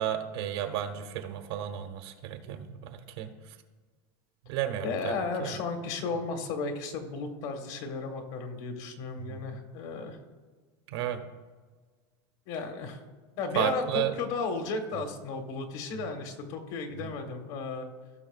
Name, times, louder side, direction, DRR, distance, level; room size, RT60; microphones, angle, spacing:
voice 1, 0.0-3.3 4.5-5.1 5.4-5.5 9.3-9.4 10.9-11.2 13.5-14.1, right 10 dB, 80° right, 6 dB, 1.2 m, -32 dB
voice 2, 4.8-10.2 12.5-13.0 13.4-17.9, left 4 dB, 50° left, 6 dB, 1.3 m, -34 dB
16.5 x 6.0 x 2.4 m, 1.4 s
supercardioid pair, 170°, 13 cm